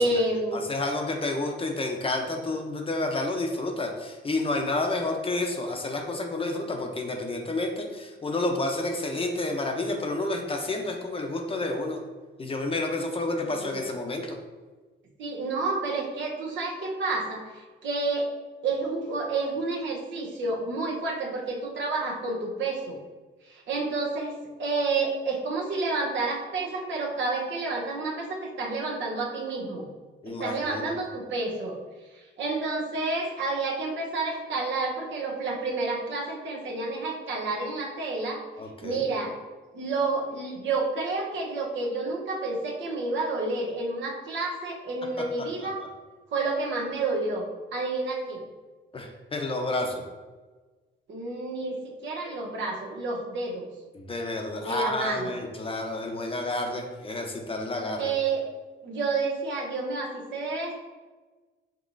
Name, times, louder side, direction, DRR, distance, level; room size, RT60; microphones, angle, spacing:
voice 1, 0.0-0.7 13.5-13.8 15.2-18.3 18.6-23.0 23.5-24.3 24.6-29.9 30.3-31.8 32.1-38.4 38.8-39.4 39.7-45.8 46.3-47.4 47.7-48.4 51.1-53.7 54.6-55.3 58.0-58.4 58.8-60.7, right 3 dB, 70° right, -2 dB, 1.0 m, -29 dB
voice 2, 0.5-12.0 12.4-14.4 30.2-30.9 38.6-39.0 45.6-45.7 48.9-50.0 53.9-58.1, left 2 dB, 30° left, 2 dB, 0.7 m, -30 dB
5.2 x 2.9 x 2.6 m, 1.3 s
cardioid pair, 90°, 20 cm